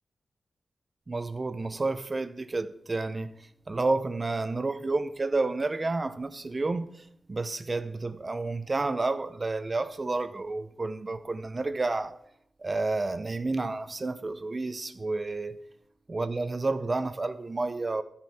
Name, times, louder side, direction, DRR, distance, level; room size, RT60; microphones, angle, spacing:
voice 1, 1.1-3.3 3.7-12.2 12.6-15.6 16.1-18.0, right 3 dB, 30° right, 0.6 m, -30 dB
12.0 x 9.6 x 4.3 m
wide cardioid pair, 135°, 0 cm